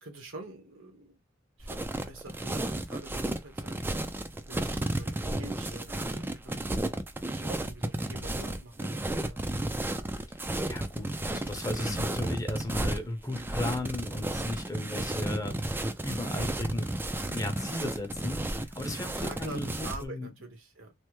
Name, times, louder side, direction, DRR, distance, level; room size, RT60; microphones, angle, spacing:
voice 1, 0.0-1.2 1.6-3.8 4.5-6.6 7.2-9.4 19.2-20.9, right 2 dB, 90° right, 1.2 m, -45 dB
sound 1, 1.6-20.1, right 1 dB, 10° right, 0.3 m, -33 dB
voice 2, 10.7-16.9 17.2-20.3, left 1 dB, 15° left, 0.7 m, -36 dB
3.3 x 2.1 x 3.0 m
head